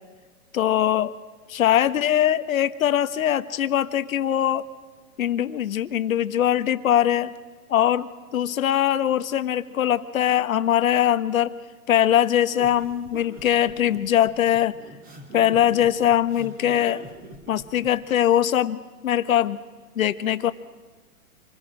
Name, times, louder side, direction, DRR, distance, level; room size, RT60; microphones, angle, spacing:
voice 1, 0.5-1.1 1.5-4.6 5.2-7.3 7.7-11.5 11.9-14.7 15.3-17.0 17.5-19.6 20.0-20.5, left 11 dB, 65° left, 13 dB, 1.3 m, -22 dB
sound 1, 12.6-17.9, right 1 dB, 20° right, 3.4 m, -43 dB
27.0 x 21.0 x 4.9 m, 1.4 s
hypercardioid pair, 135°, 44 cm